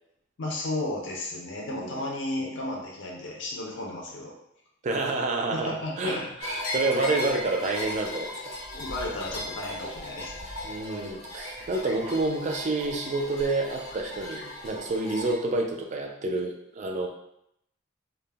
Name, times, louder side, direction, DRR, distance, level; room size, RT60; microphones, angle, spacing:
voice 1, 0.4-4.3 5.5-6.3 8.7-10.3, left 1 dB, 65° left, -2 dB, 0.5 m, -33 dB
voice 2, 1.6-2.0 2.4-2.5 4.8-8.3 10.6-17.1, right 2 dB, 35° right, 2 dB, 0.3 m, -29 dB
sound 1, 6.4-15.3, left 1 dB, 90° left, 0.8 m, -37 dB
2.2 x 2.0 x 3.3 m, 0.78 s
head